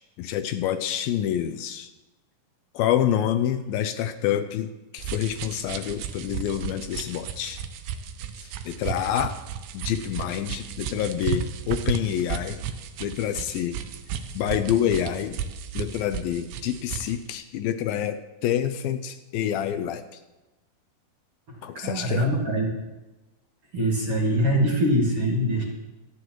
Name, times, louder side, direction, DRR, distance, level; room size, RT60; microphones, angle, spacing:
voice 1, 0.2-1.9 2.7-7.6 8.4-9.4 9.7-12.6 13.0-13.8 14.3-15.4 15.7-20.0 21.6-22.3, left 10 dB, 80° left, 9 dB, 2.3 m, -27 dB
sound 1, 5.0-17.2, right 8 dB, 75° right, 2.4 m, -34 dB
voice 2, 21.7-22.7 23.7-25.6, equal, 40° right, -3 dB, 2.5 m, -23 dB
26.0 x 10.0 x 3.1 m, 1.1 s
omnidirectional pair, 4.4 m